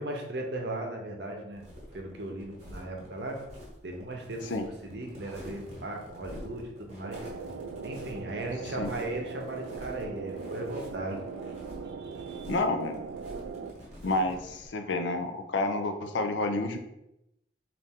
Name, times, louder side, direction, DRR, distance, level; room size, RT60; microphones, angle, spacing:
voice 1, 0.0-1.7 1.9-3.4 3.8-7.2 7.8-11.2 12.0-12.5, right 1 dB, 65° right, 2 dB, 0.7 m, -37 dB
sound 1, 1.5-14.7, equal, 35° right, 1.0 m, -47 dB
sound 2, 7.0-13.7, right 5 dB, 85° right, 0.3 m, -40 dB
voice 2, 12.5-13.0 14.0-16.8, left 2 dB, 75° left, 7 dB, 0.5 m, -29 dB
4.1 x 2.5 x 3.6 m, 0.86 s
head